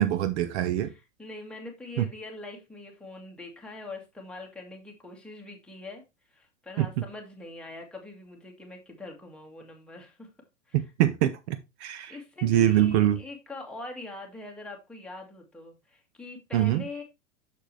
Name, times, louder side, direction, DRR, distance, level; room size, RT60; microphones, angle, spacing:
voice 1, 0.0-0.9 2.0-2.1 6.8-7.0 10.7-12.2 12.4-13.2 16.5-16.8, right 12 dB, 55° right, 0.9 m, -24 dB
voice 2, 0.8-6.0 6.3-10.3 10.7-10.8 12.1-17.0, left 2 dB, ahead, 2.0 m, -43 dB
6.9 x 6.5 x 3.3 m
hypercardioid pair, 125°, 39 cm